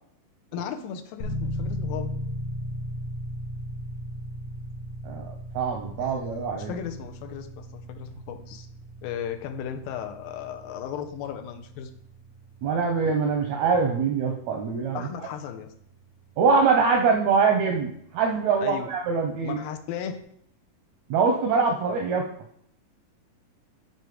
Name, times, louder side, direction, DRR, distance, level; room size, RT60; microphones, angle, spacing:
voice 1, 0.5-2.1 6.0-6.2 6.6-8.7 9.0-11.9 14.9-15.7 18.6-18.9 19.4-20.2, left 8 dB, 85° left, 6 dB, 2.4 m, -35 dB
sound 1, 1.2-17.9, equal, 70° left, 3.1 m, -38 dB
voice 2, 5.0-6.7 12.6-15.1 16.4-19.6 21.1-22.2, right 5 dB, 80° right, 3 dB, 1.6 m, -23 dB
8.2 x 4.5 x 4.9 m, 0.70 s
omnidirectional pair, 4.0 m